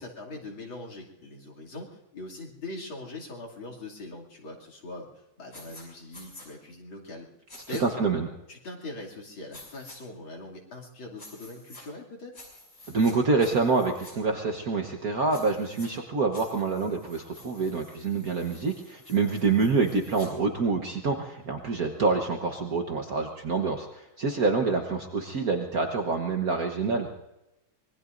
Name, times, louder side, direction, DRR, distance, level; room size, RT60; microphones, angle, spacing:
voice 1, 0.0-5.1 5.4-7.3 7.7-8.1 8.5-12.5, left 2 dB, 80° left, -2 dB, 3.5 m, -41 dB
sound 1, 5.5-5.8 6.1-6.5 7.5-7.8 9.5-10.0 11.2-11.8 12.3-13.1 13.4-14.1 15.3-15.9 16.3-20.3, left 1 dB, 40° left, 7.1 m, -49 dB
voice 2, 7.7-8.3 12.9-27.1, right 4 dB, 50° right, 2 dB, 1.5 m, -26 dB
25.5 x 22.0 x 2.6 m, 0.95 s
omnidirectional pair, 2.2 m